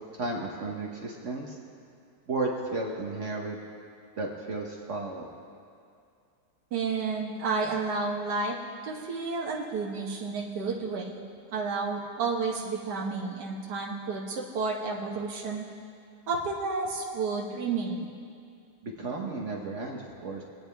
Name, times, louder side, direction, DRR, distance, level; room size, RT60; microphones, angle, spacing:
voice 1, 0.2-1.6 2.3-3.6 4.2-5.3 18.8-20.4, right 2 dB, 50° right, 0 dB, 1.3 m, -33 dB
voice 2, 6.7-8.6 8.8-11.2 11.5-15.7 16.3-18.1, right 4 dB, 80° right, -2 dB, 1.7 m, -31 dB
24.0 x 9.0 x 3.4 m, 2.4 s
omnidirectional pair, 1.8 m